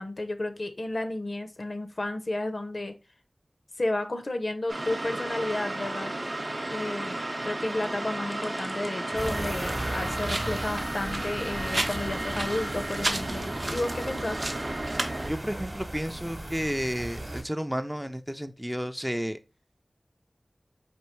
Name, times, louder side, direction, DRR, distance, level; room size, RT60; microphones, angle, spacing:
voice 1, 0.0-2.9 3.8-6.1 6.7-7.2 7.4-14.4, left 2 dB, 65° left, 7 dB, 0.5 m, -32 dB
sound 1, 4.7-15.3, right 1 dB, 55° right, 0.6 m, -32 dB
sound 2, 9.2-17.4, right 1 dB, 35° right, 0.9 m, -36 dB
voice 2, 15.2-19.4, equal, 5° right, 9 dB, 0.3 m, -32 dB
4.4 x 2.7 x 3.0 m, 0.29 s
wide cardioid pair, 60°, 0 cm